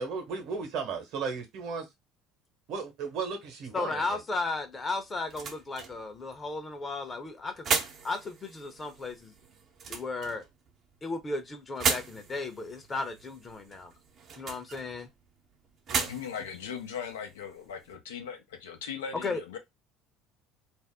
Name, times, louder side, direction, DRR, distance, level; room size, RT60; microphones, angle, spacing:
voice 1, 0.0-1.9 2.7-4.2 15.9-16.1, right 5 dB, 65° right, 1.1 m, -35 dB
voice 2, 3.7-7.7 8.0-9.3 9.9-10.4 11.0-13.9 14.4-15.1 19.1-19.4, left 3 dB, 30° left, 0.8 m, -35 dB
sound 1, 4.5-18.0, right 5 dB, 50° right, 0.6 m, -37 dB
voice 3, 16.0-19.6, left 7 dB, 85° left, 0.7 m, -39 dB
2.6 x 2.0 x 3.5 m
hypercardioid pair, 70°, 0 cm